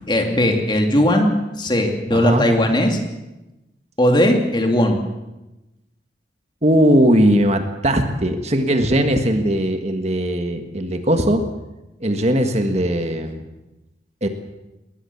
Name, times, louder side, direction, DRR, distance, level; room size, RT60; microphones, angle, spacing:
voice 1, 0.1-1.3 1.6-3.0 4.0-5.0, left 1 dB, 25° left, 3 dB, 2.8 m, -18 dB
voice 2, 2.1-2.5 6.6-11.4 12.0-13.4 14.2-14.3, equal, 40° right, 6 dB, 1.7 m, -19 dB
20.5 x 19.5 x 7.2 m, 1.0 s
head